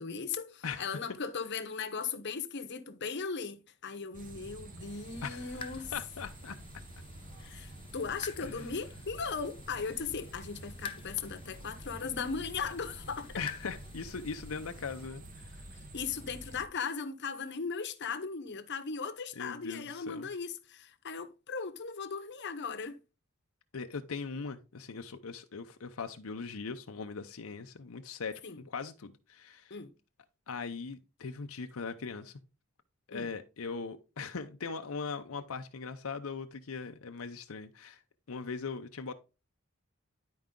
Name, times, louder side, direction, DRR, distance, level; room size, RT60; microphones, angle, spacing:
voice 1, 0.0-5.9 7.4-13.4 15.9-23.0 28.4-28.6 29.7-29.9 33.1-33.3, left 5 dB, 55° left, 0.9 m, -38 dB
voice 2, 0.6-1.0 5.2-6.6 8.4-8.7 13.4-15.7 19.4-20.3 23.7-29.8 30.5-32.4 33.1-38.0 38.3-39.1, left 5 dB, 90° left, 0.7 m, -40 dB
sound 1, 4.1-16.6, right 1 dB, 40° right, 1.1 m, -49 dB
sound 2, 4.8-15.1, left 3 dB, 25° left, 0.8 m, -50 dB
10.5 x 4.7 x 3.7 m
head